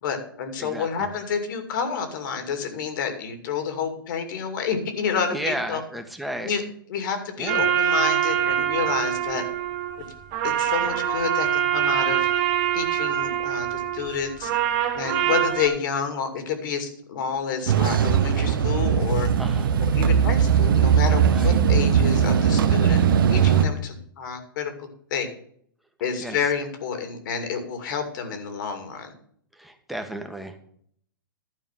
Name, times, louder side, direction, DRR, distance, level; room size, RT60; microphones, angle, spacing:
voice 1, 0.0-5.8 6.4-6.6 6.9-9.4 10.4-12.3 12.7-14.5 14.9-19.3 19.9-23.0 23.3-25.3 26.0-29.1, left 6 dB, 60° left, 7 dB, 2.4 m, -29 dB
voice 2, 0.6-1.1 5.3-6.5 7.4-7.7 19.4-19.7 21.3-21.6 26.2-26.4 29.5-30.6, right 1 dB, ahead, 4 dB, 1.3 m, -33 dB
sound 1, 7.5-15.7, right 10 dB, 45° right, 1.5 m, -24 dB
sound 2, 17.7-23.6, right 8 dB, 75° right, 0.9 m, -19 dB
12.0 x 4.9 x 7.4 m, 0.63 s
hypercardioid pair, 125°, 11 cm